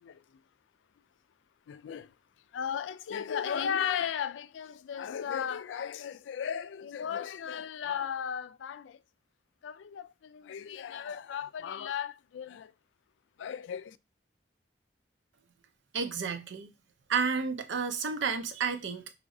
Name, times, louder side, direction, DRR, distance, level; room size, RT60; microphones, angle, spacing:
voice 1, 1.7-2.1 2.5-9.0 9.6-12.7 13.4-14.0, left 8 dB, 90° left, 0.3 m, -35 dB
voice 2, 15.9-16.7 17.1-19.1, right 5 dB, 90° right, 0.6 m, -31 dB
4.8 x 3.0 x 2.6 m
head